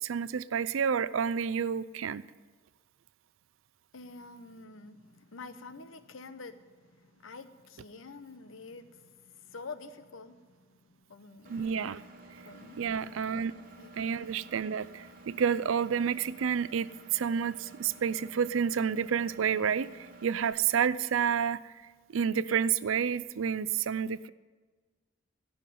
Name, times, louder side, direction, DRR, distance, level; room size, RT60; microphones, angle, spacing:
voice 1, 0.0-2.2 11.5-12.0 12.8-13.5 14.0-16.9 17.1-21.6 22.1-24.3, right 7 dB, 90° right, 0.4 m, -29 dB
voice 2, 3.9-11.7 12.0-13.0 13.8-14.0, left 3 dB, 85° left, 0.8 m, -48 dB
Engine, 11.4-20.5, right 2 dB, 45° right, 1.3 m, -52 dB
16.0 x 5.7 x 9.3 m
head